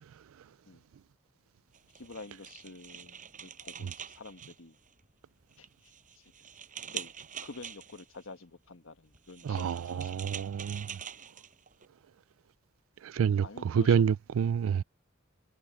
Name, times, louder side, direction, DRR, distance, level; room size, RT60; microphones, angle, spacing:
sound 1, 1.7-5.1 5.5-8.2 9.1-11.9, right 8 dB, 40° right, 7.7 m, -45 dB
voice 1, 1.9-4.8 5.6-6.2 6.9-7.1 7.4-10.2 13.4-14.1 14.4-14.6, left 3 dB, 75° left, 1.5 m, -48 dB
voice 2, 9.4-11.0 13.0-14.8, right 7 dB, 85° right, 0.4 m, -28 dB
head